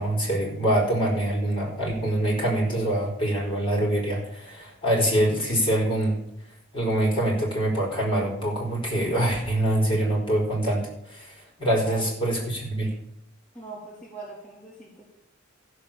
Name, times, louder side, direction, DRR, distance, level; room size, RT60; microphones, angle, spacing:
voice 1, 0.0-6.2 6.7-13.0, right 1 dB, 25° left, -3 dB, 4.4 m, -25 dB
voice 2, 13.5-15.0, right 2 dB, 5° left, -7 dB, 3.6 m, -41 dB
14.5 x 6.9 x 7.2 m, 0.75 s
head